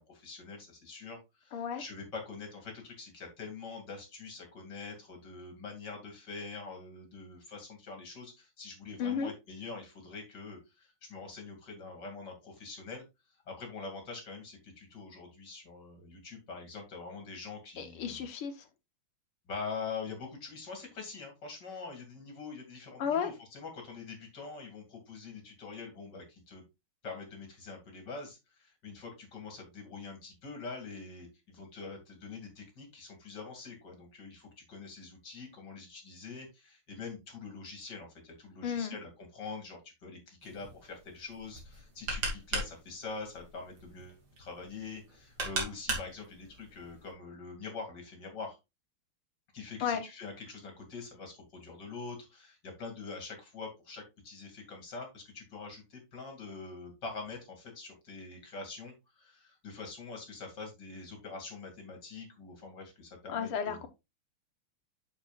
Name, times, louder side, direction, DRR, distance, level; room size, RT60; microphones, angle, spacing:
voice 1, 0.0-13.0 13.5-18.3 19.5-26.6 27.0-48.6 49.5-63.9, left 4 dB, 50° left, 3.0 m, -44 dB
voice 2, 1.5-1.8 9.0-9.3 17.8-18.6 23.0-23.3 38.6-39.0 49.8-50.0 63.3-63.9, left 7 dB, 85° left, 2.1 m, -33 dB
sound 1, 40.4-47.1, right 2 dB, 55° right, 3.1 m, -39 dB
8.8 x 6.9 x 2.4 m
omnidirectional pair, 2.4 m